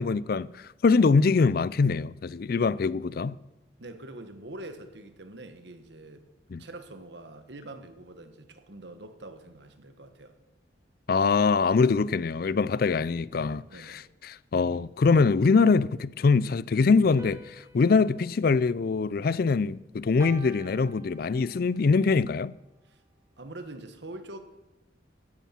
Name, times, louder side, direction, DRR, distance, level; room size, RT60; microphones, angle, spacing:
voice 1, 0.0-3.4 6.5-6.6 11.1-14.0 14.3-22.5, left 4 dB, 50° left, 0.4 m, -23 dB
voice 2, 3.8-6.3 6.6-10.3 13.7-14.1 22.8-23.0 23.4-24.4, right 2 dB, 65° right, 1.5 m, -44 dB
sound 1, 17.2-19.6 20.2-21.7, right 2 dB, 15° right, 1.0 m, -49 dB
15.5 x 11.5 x 6.0 m
head